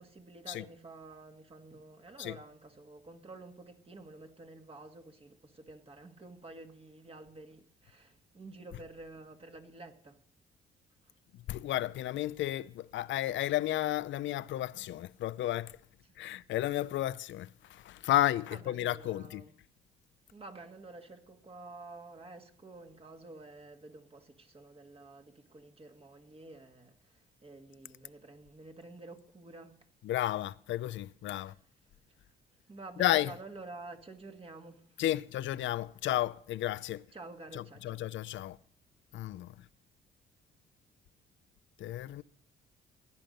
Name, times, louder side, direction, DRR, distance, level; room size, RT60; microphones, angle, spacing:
voice 1, 0.0-10.2 11.0-11.1 18.5-19.5 20.3-29.8 32.7-35.0 37.1-38.0, right 2 dB, 30° right, 1.8 m, -50 dB
voice 2, 11.3-15.8 16.2-19.4 30.0-31.6 33.0-33.3 35.0-37.1 37.5-38.6 39.1-39.7 41.8-42.2, left 14 dB, 70° left, 0.5 m, -33 dB
17.5 x 10.5 x 5.3 m
cardioid pair, 90°, 20 cm